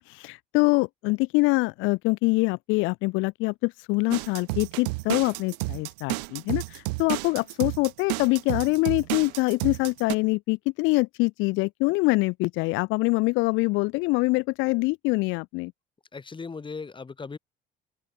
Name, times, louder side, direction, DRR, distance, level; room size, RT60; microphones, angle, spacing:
voice 1, 0.0-15.7, left 25 dB, 75° left, 0.7 m, -24 dB
sound 1, 4.1-10.1, right 26 dB, 90° right, 0.5 m, -31 dB
voice 2, 16.1-17.4, left 4 dB, 25° left, 2.2 m, -37 dB
open air
supercardioid pair, 80°, 20 cm